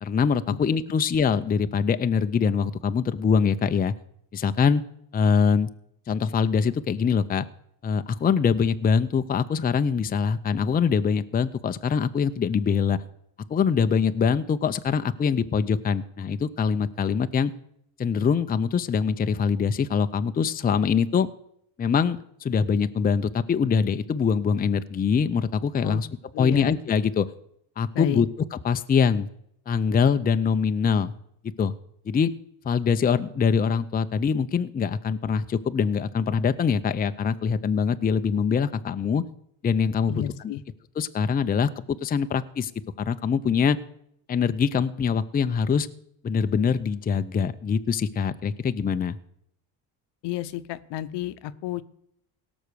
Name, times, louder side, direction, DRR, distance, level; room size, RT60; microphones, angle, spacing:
voice 1, 0.0-3.9 4.3-4.8 5.1-5.7 6.1-7.5 7.8-13.0 13.5-17.5 18.0-21.3 21.8-26.1 26.4-27.3 27.8-28.3 28.6-29.3 29.7-31.1 31.6-31.7 32.1-32.3 32.6-39.2 39.6-40.5 41.0-41.7 42.0-42.7 43.0-43.8 44.3-45.9 46.2-49.2, left 6 dB, 20° left, 10 dB, 0.5 m, -23 dB
voice 2, 26.3-26.7 27.9-28.3 40.1-40.6 50.2-51.8, left 12 dB, 75° left, 14 dB, 0.8 m, -31 dB
17.5 x 6.2 x 6.8 m, 0.72 s
cardioid pair, 115°, 43 cm